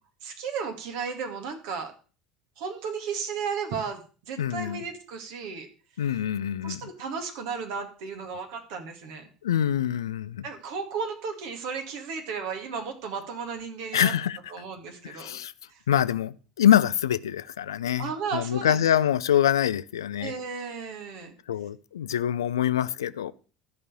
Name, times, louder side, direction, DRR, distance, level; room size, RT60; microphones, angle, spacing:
voice 1, 0.2-1.9 2.6-4.0 4.3-5.7 6.6-9.3 10.4-14.1 14.5-15.4 15.7-15.8 18.0-18.8 20.2-21.3, right 5 dB, 60° right, 2.1 m, -34 dB
voice 2, 4.4-4.8 6.0-6.8 9.4-10.4 13.9-14.4 15.0-15.5 15.9-20.3 21.5-23.3, left 10 dB, 75° left, 0.4 m, -25 dB
13.0 x 5.4 x 7.0 m
figure-of-eight pair, 70°, 2 cm